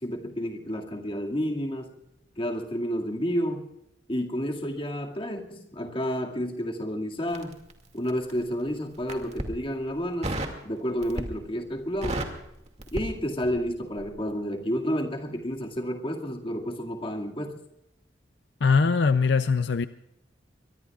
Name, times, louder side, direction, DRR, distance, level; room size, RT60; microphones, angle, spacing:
voice 1, 0.0-2.0 2.4-3.7 4.1-7.6 7.9-10.4 10.6-12.3 12.9-17.6, equal, 30° left, 2.3 m, -30 dB
Crackle, 7.3-8.4 9.0-9.6 10.2-10.6 11.0-11.5 11.8-13.7 14.0-14.2, right 1 dB, 40° right, 2.4 m, -33 dB
voice 2, 18.6-19.9, left 5 dB, 70° left, 0.5 m, -21 dB
24.0 x 22.5 x 2.5 m
head